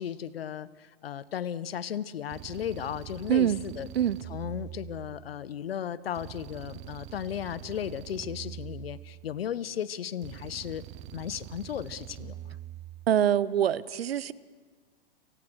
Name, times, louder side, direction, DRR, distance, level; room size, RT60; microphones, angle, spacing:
voice 1, 0.0-3.9 4.3-10.8 11.1-12.5, left 9 dB, 80° left, 18 dB, 1.1 m, -35 dB
sound 1, 2.3-5.4 6.1-9.4 10.2-13.1, right 13 dB, 25° right, 0.8 m, -44 dB
voice 2, 3.3-3.6 3.9-4.2 13.1-14.3, right 10 dB, 85° right, 20 dB, 0.9 m, -24 dB
30.0 x 19.0 x 6.4 m, 1.5 s
hypercardioid pair, 145°, 29 cm